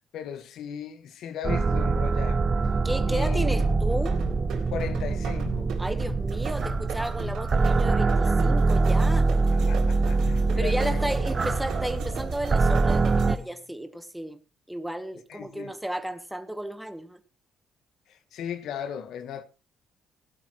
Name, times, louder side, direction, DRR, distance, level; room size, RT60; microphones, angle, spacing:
voice 1, 0.1-2.4 3.1-3.6 4.7-5.7 9.5-11.1 15.3-15.7 18.1-19.4, left 8 dB, 75° left, 1.5 m, -37 dB
sound 1, 1.4-13.4, right 3 dB, 30° right, 0.6 m, -24 dB
voice 2, 2.8-4.2 5.8-9.3 10.6-14.4 14.7-17.2, right 1 dB, 5° right, 1.2 m, -33 dB
sound 2, 3.6-13.5, right 1 dB, 75° right, 3.8 m, -38 dB
16.5 x 12.0 x 3.1 m
cardioid pair, 95°, 0 cm